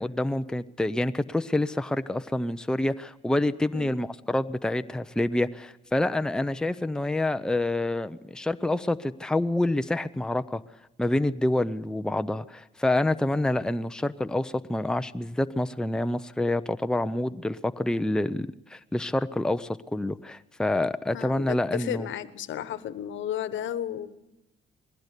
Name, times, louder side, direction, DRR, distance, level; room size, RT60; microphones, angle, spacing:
voice 1, 0.0-10.6 11.0-22.1, left 1 dB, 5° left, 10 dB, 0.7 m, -27 dB
voice 2, 21.1-24.1, left 10 dB, 75° left, 13 dB, 1.2 m, -33 dB
21.0 x 16.5 x 8.3 m, 0.93 s
cardioid pair, 90°, 20 cm